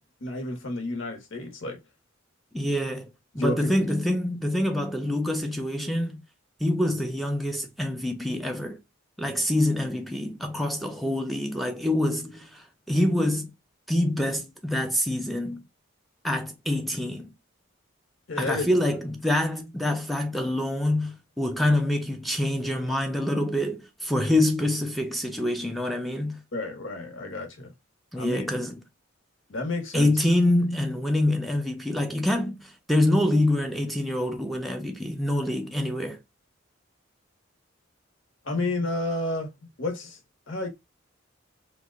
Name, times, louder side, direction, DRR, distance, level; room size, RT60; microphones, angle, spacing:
voice 1, 0.2-1.8 3.3-3.7 18.3-18.7 26.5-27.7 28.1-28.5 29.5-30.1 38.4-39.5 39.8-40.2 40.5-40.7, left 2 dB, 65° left, 0.9 m, -30 dB
voice 2, 2.5-6.2 6.6-8.8 9.2-13.5 13.9-15.6 16.2-17.3 18.4-26.4 28.1-28.8 29.9-36.2, left 1 dB, ahead, 0.4 m, -26 dB
2.9 x 2.1 x 3.4 m
head